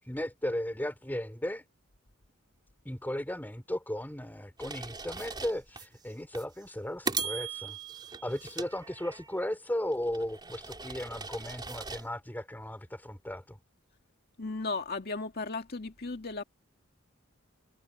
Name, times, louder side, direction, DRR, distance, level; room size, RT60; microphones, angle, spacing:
voice 1, 0.0-1.6 2.8-7.8 8.2-13.6, left 1 dB, 10° left, 3.9 m, -36 dB
sound 1, 4.6-5.9 6.3-6.5 7.1-9.4 9.9-12.1, right 4 dB, 20° right, 3.5 m, -39 dB
voice 2, 14.4-16.4, left 3 dB, 50° left, 2.1 m, -35 dB
head